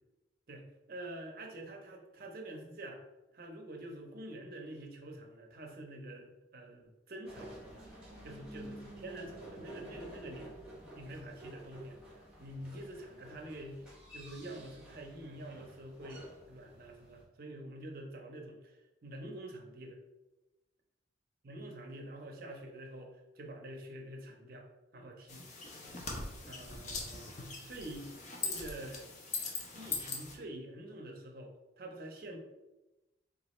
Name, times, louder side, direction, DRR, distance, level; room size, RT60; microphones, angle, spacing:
voice 1, 0.5-3.0 3.3-7.8 8.2-10.5 11.0-12.0 12.4-13.9 14.1-20.0 21.4-25.4 26.5-27.3 27.6-28.1 28.4-29.1 29.7-32.4, right 1 dB, 50° right, 2 dB, 0.5 m, -47 dB
sound 1, 7.2-17.2, right 1 dB, 5° right, 0.8 m, -51 dB
sound 2, 25.3-30.3, left 4 dB, 40° left, 0.6 m, -41 dB
3.9 x 2.3 x 3.0 m, 1.0 s
head